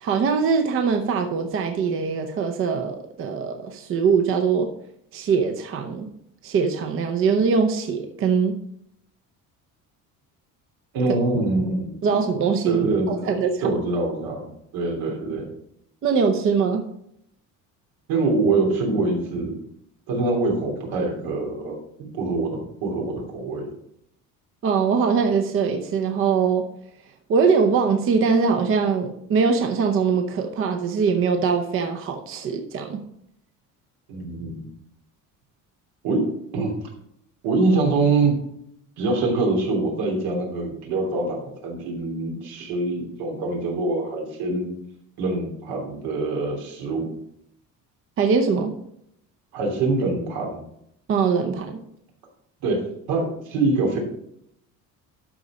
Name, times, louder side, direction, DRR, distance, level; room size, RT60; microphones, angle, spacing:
voice 1, 0.0-4.7 5.1-6.1 6.4-8.6 12.0-13.7 16.0-16.9 24.6-26.7 27.3-33.0 48.2-48.8 51.1-51.8, right 5 dB, 35° right, 5 dB, 0.7 m, -22 dB
voice 2, 10.9-12.0 12.7-15.5 18.1-19.6 20.1-23.7 34.1-34.7 36.0-36.2 36.5-36.7 37.4-38.3 39.0-44.7 45.2-47.1 49.5-50.6 52.6-52.8 53.1-54.0, right 3 dB, 80° right, 0 dB, 3.1 m, -24 dB
12.0 x 4.2 x 5.0 m, 0.74 s
cardioid pair, 180°, 35 cm